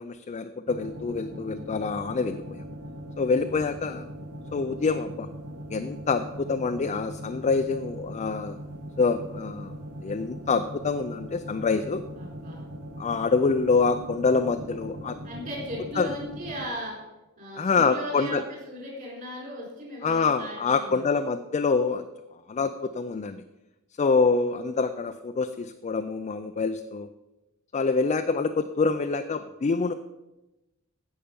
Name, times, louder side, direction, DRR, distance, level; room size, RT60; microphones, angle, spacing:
voice 1, 0.0-2.6 3.2-4.0 4.5-5.3 5.7-8.6 9.0-9.7 10.0-12.0 13.0-15.2 16.0-16.1 17.6-18.4 20.0-22.0 22.5-23.4 24.0-27.1 27.7-29.9, left 4 dB, 30° left, 8 dB, 0.4 m, -26 dB
sound 1, 0.7-16.7, equal, 90° right, 1.6 m, -40 dB
voice 2, 12.2-12.7 15.2-17.0 17.4-21.0, equal, 40° right, -3 dB, 4.3 m, -37 dB
15.5 x 5.7 x 5.3 m, 1.0 s
head